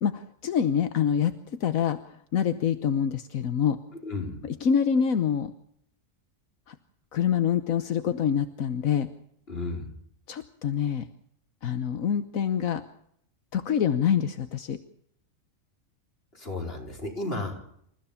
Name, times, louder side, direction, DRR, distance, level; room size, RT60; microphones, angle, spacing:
voice 1, 0.0-3.8 4.4-5.5 6.7-6.8 7.1-9.1 10.3-11.1 11.6-12.8 13.5-14.8, left 8 dB, 85° left, 10 dB, 1.5 m, -26 dB
voice 2, 4.0-4.4 9.5-9.9 16.3-17.6, left 2 dB, 45° left, 2 dB, 5.0 m, -33 dB
28.0 x 15.5 x 7.2 m, 0.70 s
omnidirectional pair, 1.4 m